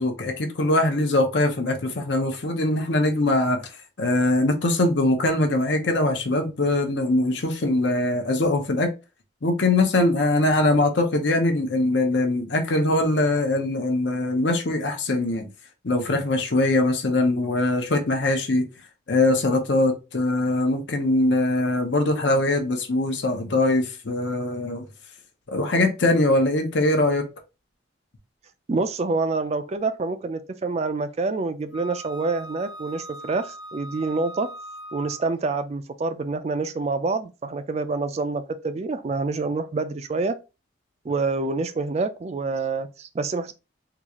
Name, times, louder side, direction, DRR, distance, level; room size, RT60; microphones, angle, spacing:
voice 1, 0.0-3.6 4.0-8.9 9.4-15.5 15.8-18.6 19.1-24.9 25.5-27.2, left 2 dB, 65° left, 0.8 m, -22 dB
voice 2, 28.7-34.5 34.9-40.4 41.0-43.5, right 3 dB, 35° right, 0.3 m, -27 dB
Wind instrument woodwind instrument, 31.7-35.3, equal, 85° left, 1.1 m, -40 dB
3.8 x 2.4 x 2.9 m
head